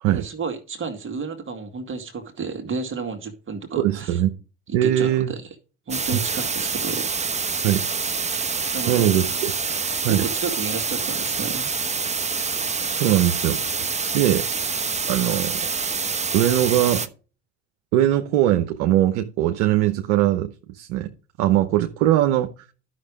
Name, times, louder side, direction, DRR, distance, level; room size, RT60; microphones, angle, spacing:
voice 1, 0.0-4.2 4.7-5.5 5.9-7.1 8.7-9.4 10.0-11.7, right 5 dB, 35° right, 2.0 m, -32 dB
voice 2, 3.8-4.3 4.7-5.3 6.1-6.2 7.6-7.8 8.9-9.5 10.0-10.3 12.9-13.6 14.1-14.4 15.1-15.6 16.3-17.1 17.9-21.1 21.4-22.5, right 12 dB, 75° right, 1.0 m, -20 dB
sound 1, 5.9-17.1, right 5 dB, 20° right, 0.9 m, -26 dB
11.5 x 6.1 x 5.0 m
hypercardioid pair, 65°, 34 cm